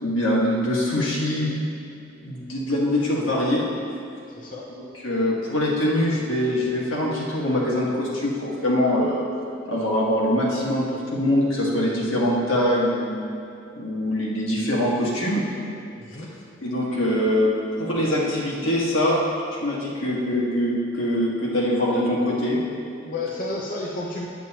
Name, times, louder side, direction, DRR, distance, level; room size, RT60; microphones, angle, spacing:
voice 1, 0.0-1.5 2.2-3.6 5.0-9.2 9.7-13.1 13.8-15.4 16.6-17.5 17.8-19.2 19.6-22.6, left 1 dB, 90° left, -5 dB, 1.7 m, -23 dB
voice 2, 4.3-4.7 16.0-16.3 23.0-24.3, left 2 dB, 45° left, -3 dB, 0.8 m, -31 dB
9.0 x 8.5 x 3.0 m, 2.7 s
head